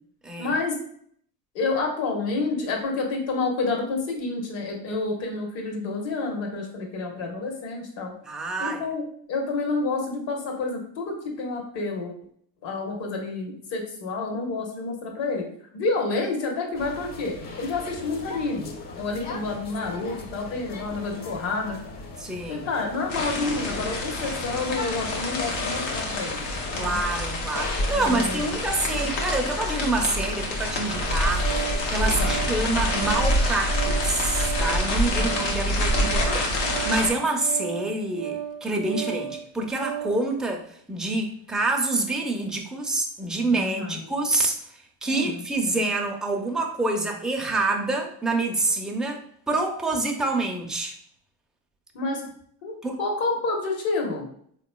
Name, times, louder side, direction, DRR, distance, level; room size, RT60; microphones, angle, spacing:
voice 1, 0.4-0.7 1.5-8.1 8.6-12.1 12.6-15.4 15.7-18.7 19.0-21.7 22.5-26.5 26.7-27.0 27.9-28.5 32.0-32.4 35.1-35.4 43.5-44.0 45.0-45.4 51.9-52.2 52.6-52.7 53.0-54.2, left 3 dB, 65° left, 1 dB, 1.2 m, -29 dB
voice 2, 8.3-8.8 22.2-22.7 26.7-44.6 45.0-50.9 52.8-53.0, right 2 dB, ahead, 1 dB, 0.4 m, -27 dB
sound 1, 16.7-34.5, left 2 dB, 45° left, 0.8 m, -38 dB
sound 2, 23.1-37.1, left 1 dB, 90° left, 0.9 m, -27 dB
Organ, 30.8-40.2, right 10 dB, 50° right, 0.5 m, -35 dB
3.7 x 3.0 x 2.2 m, 0.63 s
supercardioid pair, 80°, 48 cm